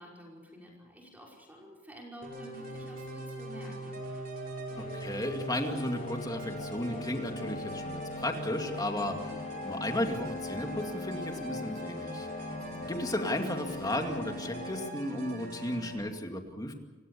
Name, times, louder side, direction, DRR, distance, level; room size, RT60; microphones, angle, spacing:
voice 1, 0.0-4.0, equal, 10° right, -2 dB, 5.3 m, -49 dB
sound 1, 2.2-15.9, right 1 dB, 50° right, 5.6 m, -42 dB
sound 2, 4.7-14.9, left 3 dB, 35° left, 1.0 m, -41 dB
voice 2, 4.9-12.5 12.9-16.7, left 1 dB, 20° left, 4 dB, 2.3 m, -34 dB
29.5 x 17.0 x 7.0 m, 1.2 s
head